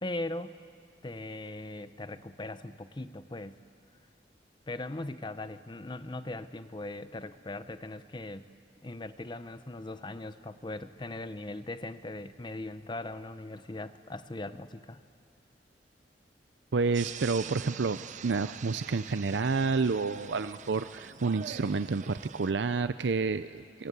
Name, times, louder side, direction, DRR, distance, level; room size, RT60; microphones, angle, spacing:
voice 1, 0.0-0.6 1.0-3.6 4.7-8.5 8.8-15.0, left 2 dB, 25° left, 12 dB, 0.7 m, -39 dB
voice 2, 16.7-23.9, right 4 dB, 90° right, 12 dB, 0.6 m, -29 dB
sound 1, 16.9-22.5, right 8 dB, 45° right, 0.6 m, -45 dB
26.0 x 24.0 x 8.2 m, 2.3 s
head